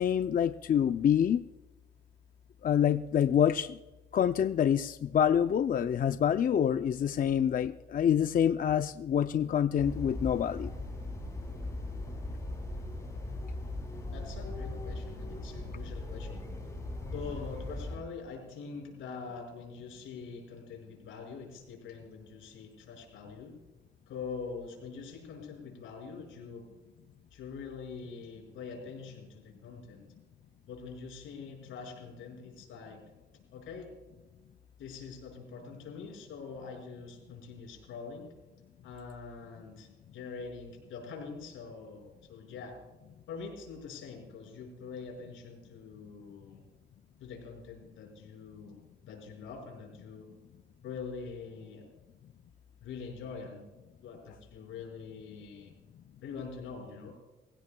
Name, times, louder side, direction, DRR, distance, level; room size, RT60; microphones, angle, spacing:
voice 1, 0.0-1.4 2.6-3.8 4.1-10.7, left 9 dB, 45° left, 10 dB, 0.5 m, -26 dB
sound 1, 9.8-18.0, left 2 dB, 15° left, 5.7 m, -39 dB
voice 2, 14.1-16.4 17.1-23.5 24.1-26.6 27.3-30.1 30.7-33.0 33.5-33.9 34.8-38.3 38.8-42.8 43.3-46.6 47.2-50.3 50.8-51.8 52.8-53.6 54.0-55.7 56.2-57.2, left 5 dB, 80° left, 1 dB, 5.6 m, -44 dB
23.0 x 16.5 x 2.3 m, 1.1 s
cardioid pair, 90°, 20 cm